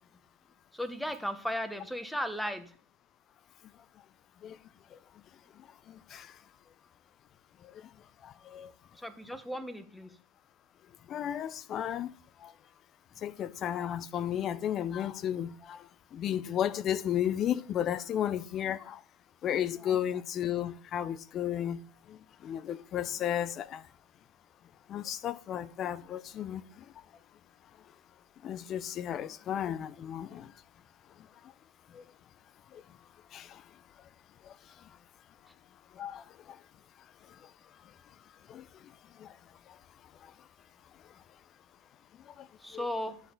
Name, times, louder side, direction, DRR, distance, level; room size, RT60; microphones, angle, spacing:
voice 1, 0.7-2.7 8.9-10.2 42.6-43.2, equal, 5° left, 1.0 m, -36 dB
voice 2, 5.9-6.3 7.6-7.9 8.2-8.7 11.1-12.1 12.4-12.5 13.2-19.0 19.4-21.8 22.1-23.8 24.9-26.8 28.4-30.5 31.9-32.0 32.7-32.8 33.3-33.6 34.4-34.6 35.9-36.6 37.4-37.5 38.5-38.7 39.2-39.4 39.7-39.8 40.2-40.3 42.3-42.5 42.7-42.8, left 10 dB, 40° left, 0.5 m, -34 dB
11.5 x 7.6 x 4.0 m
hypercardioid pair, 100°, 0 cm